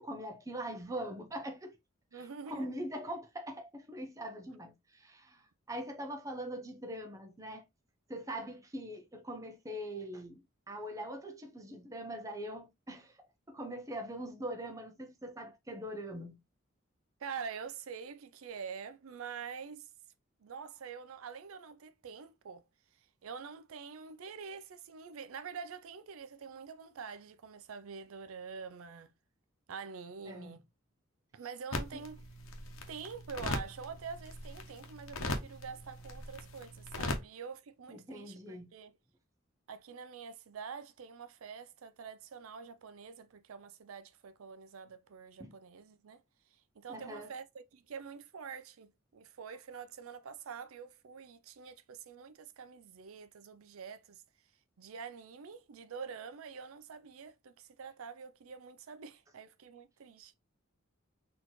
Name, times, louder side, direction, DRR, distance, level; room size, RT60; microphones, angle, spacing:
voice 1, 0.0-1.8 2.1-7.6 8.1-13.2 13.5-16.4 30.3-30.5 37.9-38.7 45.4-45.5 46.9-47.3, right 1 dB, 15° right, 0.6 m, -42 dB
voice 2, 2.1-2.8 17.2-19.9 20.4-22.6 23.2-29.1 29.7-30.6 31.3-32.2 32.9-38.9 39.7-46.2 46.5-54.2 54.8-60.3, right 6 dB, 90° right, 0.5 m, -46 dB
sound 1, 31.7-37.2, left 2 dB, 85° left, 0.9 m, -40 dB
4.1 x 2.9 x 3.0 m
head